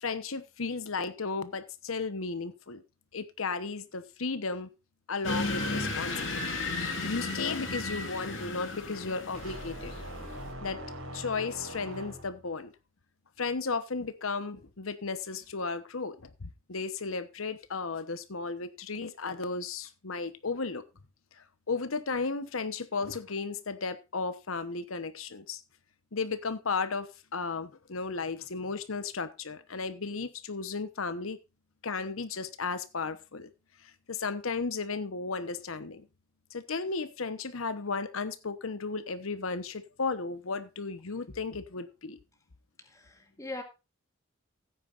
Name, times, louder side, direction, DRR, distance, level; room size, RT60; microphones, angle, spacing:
voice 1, 0.0-2.8 3.1-4.7 5.1-6.4 7.0-9.9 10.6-10.8 11.1-12.7 13.4-20.8 21.7-25.6 26.1-31.4 31.8-33.5 34.1-36.0 36.5-42.2, left 4 dB, 80° left, 1.0 m, -34 dB
sound 1, 5.2-10.5, left 3 dB, 60° left, 3.2 m, -34 dB
sound 2, 9.3-12.5, equal, 85° right, 4.1 m, -42 dB
voice 2, 42.9-43.6, left 2 dB, 15° left, 2.2 m, -40 dB
16.0 x 9.2 x 2.5 m
head